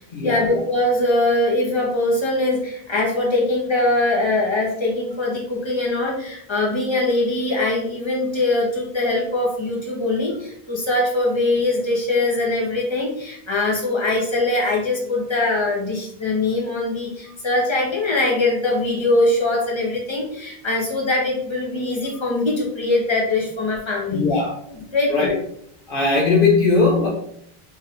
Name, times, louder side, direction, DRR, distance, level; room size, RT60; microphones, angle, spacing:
voice 1, 0.2-24.2 24.7-25.3, left 2 dB, 30° left, -2 dB, 1.2 m, -22 dB
voice 2, 24.1-24.5 25.1-25.4 25.9-27.1, left 4 dB, 60° left, -2 dB, 1.0 m, -18 dB
4.4 x 3.6 x 3.3 m, 0.68 s
omnidirectional pair, 1.0 m